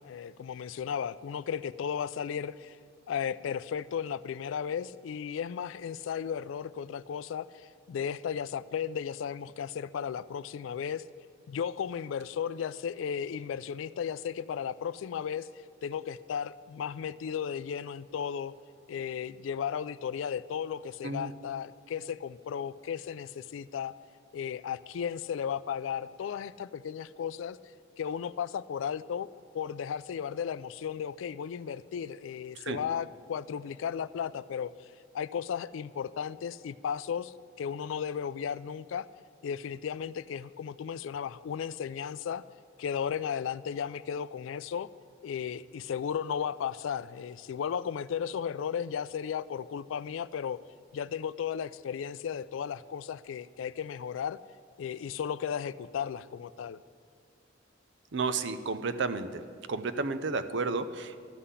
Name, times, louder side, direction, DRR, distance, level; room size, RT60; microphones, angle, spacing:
voice 1, 0.0-2.8 3.1-11.0 11.5-15.5 15.8-18.5 18.9-23.9 24.3-27.6 28.0-29.3 29.5-34.7 35.1-39.1 39.4-42.4 42.8-44.9 45.2-50.6 50.9-54.4 54.8-56.8, left 7 dB, 75° left, 18 dB, 0.3 m, -35 dB
voice 2, 58.1-59.4 59.7-61.2, right 4 dB, 60° right, 11 dB, 0.6 m, -32 dB
13.0 x 5.7 x 8.2 m, 2.3 s
head